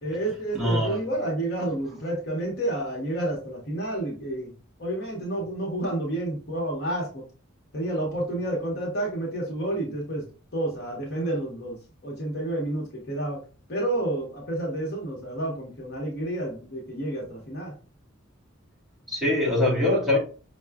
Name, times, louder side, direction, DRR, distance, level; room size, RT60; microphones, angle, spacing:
voice 1, 0.0-4.5 4.8-7.2 7.7-10.2 10.5-11.8 12.0-13.4 13.7-17.7, right 1 dB, 50° left, 1.0 m, -30 dB
voice 2, 0.5-1.0 19.1-20.2, left 1 dB, ahead, 1.1 m, -23 dB
5.6 x 2.3 x 2.3 m
head